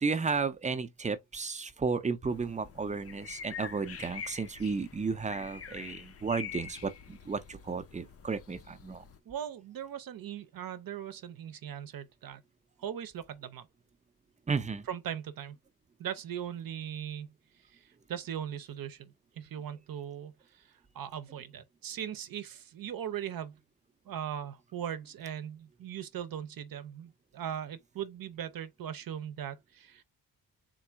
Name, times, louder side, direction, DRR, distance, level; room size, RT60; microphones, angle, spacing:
voice 1, 0.0-9.0 14.5-14.9, right 4 dB, 20° right, 0.5 m, -33 dB
sound 1, 2.3-9.2, left 7 dB, 40° left, 0.5 m, -46 dB
voice 2, 9.3-12.4 12.8-13.7 14.9-15.6 16.0-17.3 17.7-23.6 24.1-30.0, right 9 dB, 65° right, 0.7 m, -39 dB
3.9 x 2.4 x 4.4 m
wide cardioid pair, 160°, 38 cm